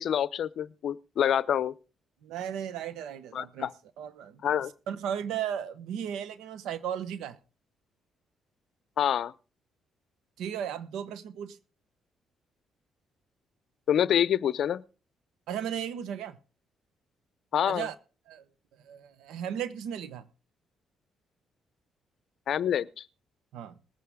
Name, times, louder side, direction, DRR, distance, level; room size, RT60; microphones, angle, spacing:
voice 1, 0.0-1.7 3.3-3.7 4.4-4.7 9.0-9.3 13.9-14.8 17.5-17.9 22.5-23.0, left 9 dB, 65° left, 0.6 m, -27 dB
voice 2, 2.2-3.7 4.0-4.5 4.9-7.4 10.4-11.6 15.5-16.4 17.6-17.9 18.3-18.4 18.8-20.3 23.5-23.7, right 9 dB, 85° right, 1.1 m, -35 dB
20.0 x 8.5 x 3.7 m
cardioid pair, 90°, 0 cm